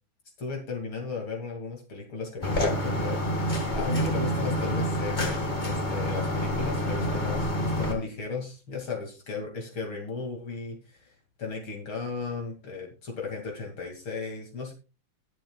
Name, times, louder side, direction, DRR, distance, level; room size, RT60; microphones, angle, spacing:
voice 1, 0.4-14.7, left 4 dB, 70° left, 1 dB, 3.2 m, -36 dB
sound 1, 2.4-7.9, equal, 20° left, 1.9 m, -27 dB
20.5 x 7.5 x 2.3 m, 0.30 s
omnidirectional pair, 2.4 m